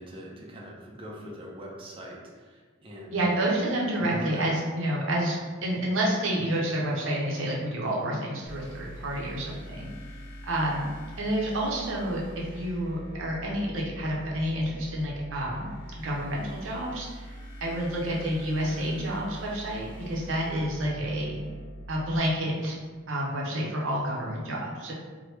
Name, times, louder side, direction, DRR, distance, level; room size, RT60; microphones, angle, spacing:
voice 1, 0.0-3.5 4.0-4.4 20.5-20.6, equal, 25° right, -2 dB, 0.5 m, -42 dB
voice 2, 3.1-9.9 10.4-10.9 11.2-15.7 16.0-21.4 21.9-22.8 23.1-24.9, right 1 dB, 80° right, -3 dB, 0.7 m, -29 dB
sound 1, 8.5-22.2, equal, 45° left, 0.7 m, -43 dB
2.9 x 2.1 x 3.2 m, 1.4 s
head